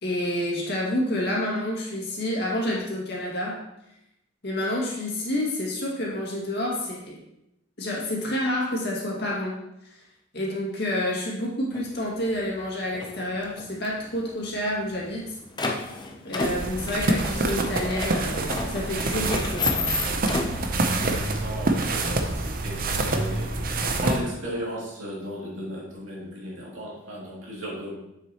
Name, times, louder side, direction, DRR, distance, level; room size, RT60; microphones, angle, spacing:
voice 1, 0.0-3.6 4.4-7.2 7.8-9.6 9.8-10.0 10.3-15.3 16.2-20.0, left 1 dB, 55° left, -4 dB, 2.1 m, -29 dB
sound 1, 11.7-11.9 12.3-12.6 12.9-13.9 14.1-14.2 14.4-14.5 15.0-20.7, left 3 dB, 20° left, 0.7 m, -31 dB
sound 2, 16.4-24.2, right 2 dB, 45° right, 0.7 m, -26 dB
voice 2, 20.8-27.9, equal, 75° right, -5 dB, 2.6 m, -35 dB
7.3 x 6.5 x 3.0 m, 0.86 s
head